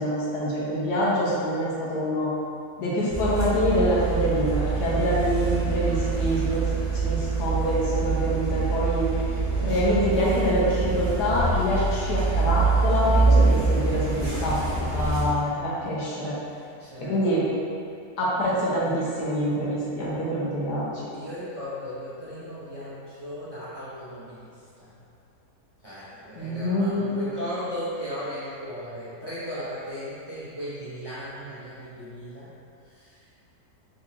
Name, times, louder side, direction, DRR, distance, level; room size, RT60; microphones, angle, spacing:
voice 1, 0.0-2.3 2.8-6.6 7.0-9.0 9.6-14.6 14.9-16.3 17.0-17.4 18.2-21.1 26.4-27.3, equal, 85° left, -7 dB, 1.5 m, -25 dB
sound 1, 3.1-15.3, right 4 dB, 70° right, 1.4 m, -25 dB
voice 2, 16.4-17.4 21.1-25.0 25.8-32.5 32.8-33.2, equal, 20° right, -12 dB, 0.8 m, -37 dB
4.0 x 3.6 x 2.8 m, 2.5 s
omnidirectional pair, 1.7 m